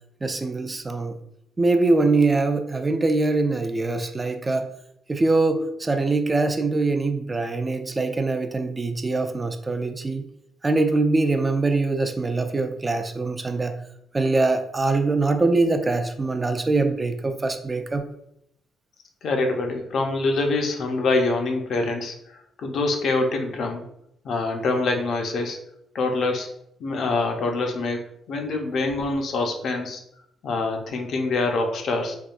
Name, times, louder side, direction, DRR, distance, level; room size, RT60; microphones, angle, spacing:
voice 1, 0.2-1.2 1.6-4.7 5.1-10.2 10.6-13.7 14.1-18.0, right 3 dB, 25° right, 7 dB, 0.3 m, -23 dB
voice 2, 19.2-22.1 22.6-23.8 24.2-25.6 25.9-26.5 26.8-28.0 28.3-30.0 30.4-32.2, left 3 dB, 65° left, 4 dB, 0.5 m, -25 dB
3.5 x 2.2 x 2.4 m, 0.75 s
cardioid pair, 90°, 0 cm